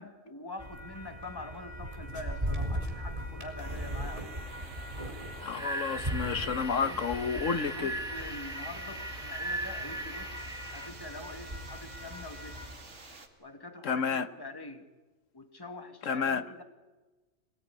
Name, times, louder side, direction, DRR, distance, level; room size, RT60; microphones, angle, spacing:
voice 1, 0.0-4.4 6.8-7.0 7.5-10.4 10.7-12.6 13.4-14.9 15.3-16.6, left 2 dB, 15° left, 6 dB, 2.0 m, -45 dB
sound 1, 0.6-12.7, equal, 25° right, 4.0 m, -39 dB
sound 2, 3.6-13.3, right 3 dB, 65° right, 2.8 m, -50 dB
voice 2, 5.4-7.9 13.8-14.3 16.0-16.4, left 6 dB, 75° left, 12 dB, 1.5 m, -30 dB
sound 3, 5.5-10.9, right 2 dB, 5° right, 1.0 m, -39 dB
25.5 x 19.5 x 9.8 m, 1.2 s
omnidirectional pair, 1.3 m